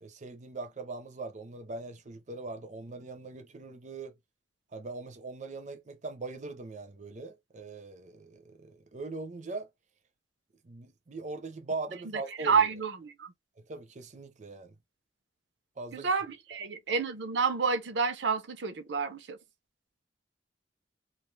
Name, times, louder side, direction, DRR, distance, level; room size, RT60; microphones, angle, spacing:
voice 1, 0.0-4.1 4.7-9.7 10.6-12.7 13.7-14.8 15.8-16.1, right 3 dB, 40° right, 0.6 m, -41 dB
voice 2, 12.4-13.3 15.9-19.4, right 5 dB, 80° right, 0.6 m, -29 dB
2.5 x 2.4 x 3.1 m
head